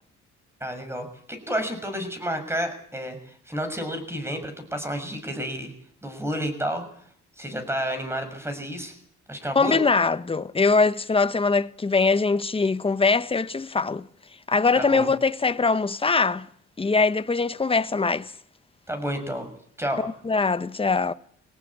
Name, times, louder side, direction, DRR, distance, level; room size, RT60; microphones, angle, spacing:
voice 1, 0.6-5.7 6.0-6.8 7.4-8.9 9.3-9.8 14.7-15.1 18.9-20.0, equal, 10° right, 6.7 m, -30 dB
voice 2, 9.5-14.1 14.5-16.5 16.8-18.3 20.0-21.1, left 4 dB, 20° left, 0.9 m, -22 dB
22.5 x 18.0 x 8.6 m
cardioid pair, 90°, 30 cm